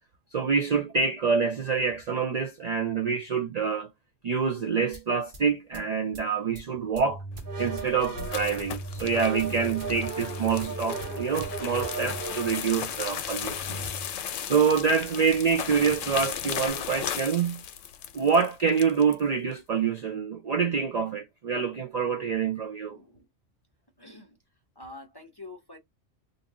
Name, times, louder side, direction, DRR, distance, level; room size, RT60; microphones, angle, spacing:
voice 1, 0.3-3.9 4.2-7.2 7.6-13.8 14.4-17.6 18.1-23.0, right 6 dB, 80° right, 0.3 m, -26 dB
sound 1, 4.9-5.0 5.3-5.4 5.7-6.2 6.6-6.7 7.0-14.3 14.7-14.8 15.1-15.2 15.5-16.3, right 3 dB, 50° right, 1.0 m, -37 dB
sound 2, 7.4-19.2, left 9 dB, 85° left, 0.9 m, -36 dB
voice 2, 22.9-23.3 24.0-24.4 24.8-25.8, left 2 dB, 30° left, 0.5 m, -46 dB
2.6 x 2.6 x 3.6 m
omnidirectional pair, 1.3 m